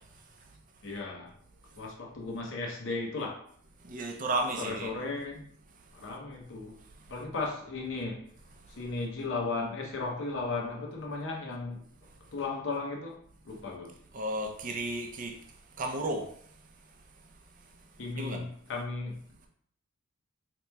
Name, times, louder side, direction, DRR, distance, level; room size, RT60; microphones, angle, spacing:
voice 1, 0.8-1.3 1.7-3.4 4.6-5.5 5.9-6.8 7.1-8.2 8.7-11.8 12.3-13.2 13.5-13.9 18.0-19.2, left 3 dB, 60° left, 0.7 m, -35 dB
voice 2, 3.8-4.9 14.1-15.3 15.8-16.3 18.2-18.4, right 2 dB, 40° right, 0.5 m, -33 dB
4.1 x 2.9 x 2.2 m
head